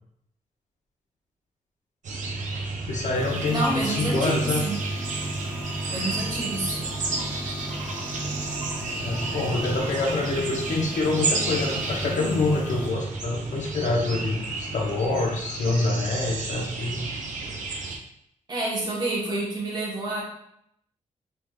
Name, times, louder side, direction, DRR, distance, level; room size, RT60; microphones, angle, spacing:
sound 1, 2.0-18.0, right 3 dB, 70° right, 0.5 m, -32 dB
voice 1, 2.9-4.6 9.0-17.0, left 2 dB, 70° left, 0 dB, 0.7 m, -26 dB
sound 2, 3.1-12.9, equal, 15° right, 0.7 m, -36 dB
voice 2, 3.5-4.8 5.9-6.8 18.5-20.2, right 2 dB, 35° right, -4 dB, 1.0 m, -28 dB
3.3 x 3.1 x 2.2 m, 0.73 s
wide cardioid pair, 145°, 13 cm